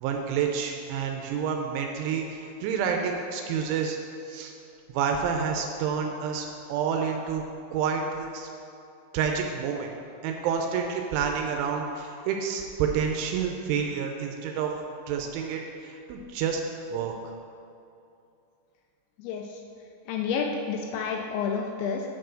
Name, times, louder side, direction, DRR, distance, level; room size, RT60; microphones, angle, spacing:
voice 1, 0.0-4.0 4.3-4.5 4.9-7.4 7.7-8.5 9.1-9.9 10.2-14.7 15.1-16.6 16.9-17.1, right 6 dB, 85° right, 2 dB, 2.9 m, -29 dB
voice 2, 19.2-19.6 20.1-22.0, left 6 dB, 90° left, 1 dB, 2.5 m, -30 dB
8.3 x 4.6 x 6.3 m, 2.6 s
omnidirectional pair, 5.8 m